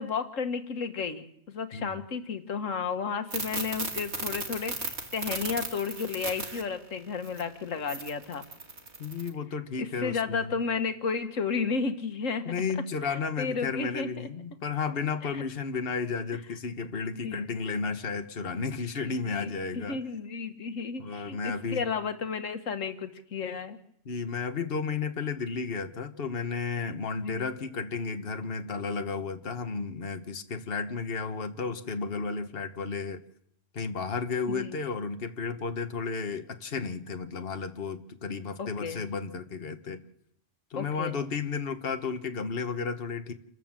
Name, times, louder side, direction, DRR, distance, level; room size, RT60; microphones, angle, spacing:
voice 1, 0.0-8.4 9.8-12.5 13.1-14.3 15.3-15.4 17.2-17.5 19.0-19.5 19.7-23.8 27.2-27.5 34.5-34.8 38.6-39.1 40.8-41.2, left 5 dB, 90° left, 8 dB, 1.7 m, -33 dB
sound 1, 3.3-6.6 7.2-7.4 7.9-9.3, right 3 dB, 60° right, 2.7 m, -35 dB
voice 2, 9.0-10.5 12.4-20.0 21.0-21.8 24.0-33.2 33.7-40.0 40.7-43.3, left 5 dB, 50° left, 7 dB, 1.5 m, -33 dB
28.0 x 13.5 x 7.5 m, 0.74 s
omnidirectional pair, 1.3 m